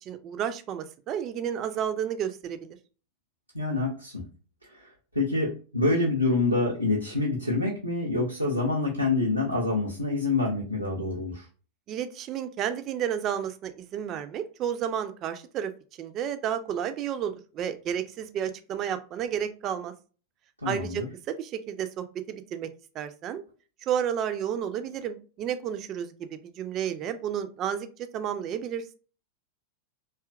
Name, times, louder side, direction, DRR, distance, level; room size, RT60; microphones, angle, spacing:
voice 1, 0.0-2.8 11.9-15.7 16.0-19.9 20.6-22.7 22.9-23.4 23.8-27.9 28.1-28.9, right 9 dB, 35° right, 10 dB, 0.3 m, -31 dB
voice 2, 3.5-4.2 4.7-4.9 5.1-11.4 20.6-21.1, left 2 dB, 90° right, -4 dB, 0.6 m, -26 dB
2.7 x 2.3 x 2.3 m, 0.37 s
figure-of-eight pair, 90°, 0 cm